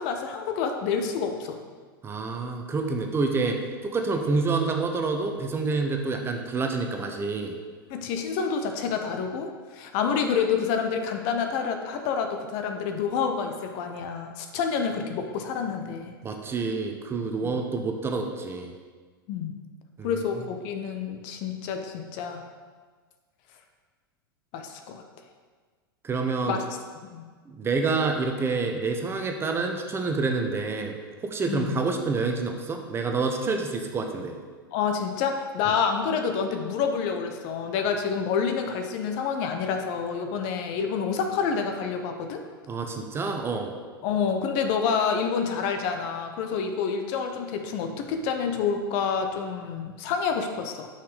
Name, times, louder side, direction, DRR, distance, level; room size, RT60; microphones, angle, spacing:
voice 1, 0.0-1.6 7.9-16.1 17.4-17.6 19.3-19.5 20.0-22.4 24.5-25.0 26.5-26.6 26.9-27.3 31.4-31.8 34.7-42.4 44.0-50.9, left 6 dB, 50° left, 5 dB, 0.9 m, -28 dB
voice 2, 2.0-7.6 16.2-18.7 20.0-20.2 26.0-26.6 27.5-31.0 31.2-34.3 42.7-43.7, right 4 dB, 20° right, 4 dB, 0.9 m, -28 dB
5.9 x 5.7 x 5.1 m, 1.5 s
hypercardioid pair, 100°, 12 cm